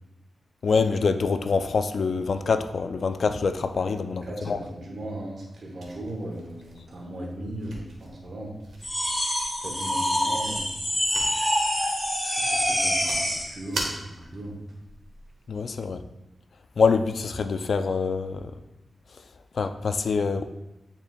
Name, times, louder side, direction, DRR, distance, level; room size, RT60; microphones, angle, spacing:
voice 1, 0.6-4.6 15.5-16.0 16.8-18.5 19.5-20.4, left 5 dB, 65° left, 9 dB, 0.4 m, -25 dB
voice 2, 3.8-8.6 9.6-10.8 12.3-14.6, right 1 dB, 65° right, -1 dB, 1.4 m, -37 dB
sound 1, 5.8-15.7, right 2 dB, 85° right, 1.3 m, -42 dB
sound 2, 8.8-13.5, equal, 5° left, 1.2 m, -26 dB
9.5 x 4.3 x 2.3 m, 1.0 s
wide cardioid pair, 100°, 0 cm